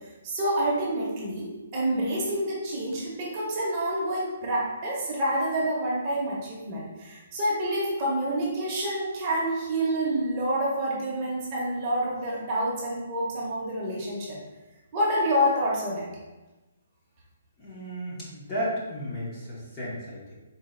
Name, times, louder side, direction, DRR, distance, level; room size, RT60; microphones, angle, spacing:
voice 1, 0.2-14.4 14.9-16.1, right 1 dB, 20° right, -5 dB, 0.7 m, -28 dB
voice 2, 17.6-20.3, equal, 15° left, -7 dB, 0.6 m, -34 dB
4.1 x 2.5 x 3.7 m, 1.1 s
hypercardioid pair, 180°, 0 cm